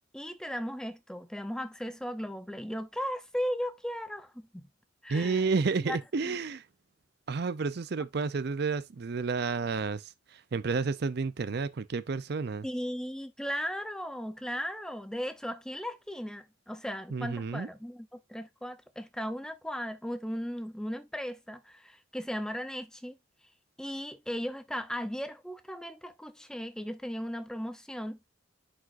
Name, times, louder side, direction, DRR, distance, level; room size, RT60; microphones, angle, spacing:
voice 1, 0.1-4.7 5.0-5.5 5.9-6.0 6.2-6.4 12.6-23.2 23.8-28.2, equal, 5° left, 0.6 m, -36 dB
voice 2, 5.1-6.6 7.3-12.7 17.1-17.7, right 4 dB, 50° right, 0.5 m, -31 dB
10.0 x 4.8 x 2.5 m
head